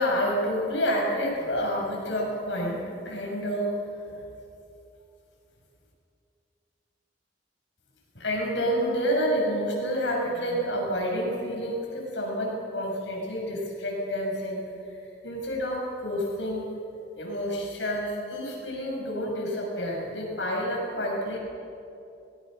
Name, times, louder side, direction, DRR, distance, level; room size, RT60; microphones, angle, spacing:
voice 1, 0.0-4.1 8.1-14.6 14.9-15.0 15.2-16.7 17.1-21.4, equal, 80° left, -2 dB, 7.2 m, -29 dB
23.5 x 20.0 x 6.7 m, 2.6 s
head